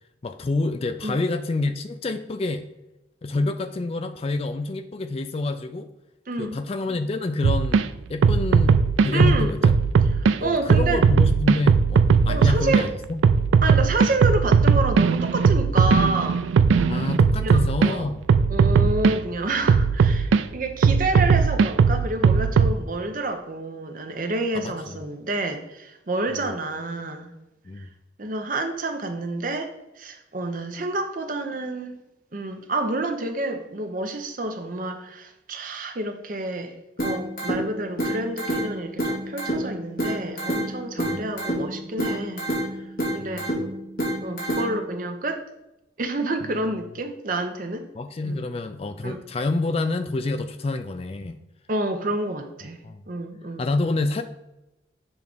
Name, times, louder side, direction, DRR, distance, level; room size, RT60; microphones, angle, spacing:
voice 1, 0.2-2.6 3.2-5.9 6.4-9.7 10.4-13.2 16.8-18.2 24.5-24.7 26.3-26.4 27.7-27.9 41.0-41.2 43.2-43.6 46.4-46.6 47.9-51.4 52.8-53.0 53.6-54.2, left 2 dB, 30° left, 9 dB, 0.3 m, -28 dB
voice 2, 6.3-6.6 9.1-9.6 10.1-11.0 12.3-12.8 13.6-16.4 17.4-18.1 18.5-27.3 27.8-27.9 28.2-32.0 32.3-36.7 37.0-42.4 43.1-43.5 44.2-45.4 46.0-47.9 48.2-48.5 49.0-49.2 51.7-52.8 53.1-53.7, right 2 dB, 45° right, 6 dB, 0.7 m, -29 dB
sound 1, 7.4-7.8 8.2-10.4 10.7-12.8 13.2-17.9 18.3-19.2 19.7-20.4 20.8-22.7, right 5 dB, 80° right, 0.3 m, -18 dB
sound 2, 37.0-45.0, right 1 dB, 45° left, 2.3 m, -29 dB
7.1 x 3.1 x 5.1 m, 0.95 s
head